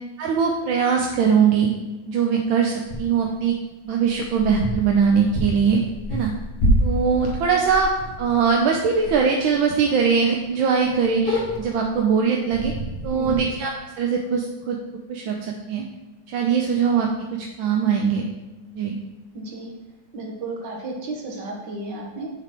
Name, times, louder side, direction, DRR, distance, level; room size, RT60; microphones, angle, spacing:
voice 1, 0.2-1.7 2.1-3.6 3.8-5.8 6.1-6.3 6.8-7.9 8.2-12.7 13.0-13.7 14.0-14.8 15.1-15.8 16.3-18.2 18.7-19.0, right 6 dB, 80° right, 1 dB, 1.4 m, -21 dB
sound 1, 2.9-3.3 4.1-8.6 9.0-9.2 9.5-9.6 10.1-10.2 10.4-10.5 10.8-11.9 12.5-13.4, equal, 55° left, 1.5 m, -27 dB
voice 2, 19.3-19.7 20.1-22.3, right 2 dB, 65° right, 0 dB, 1.9 m, -33 dB
9.2 x 3.9 x 4.4 m, 1.1 s
omnidirectional pair, 2.1 m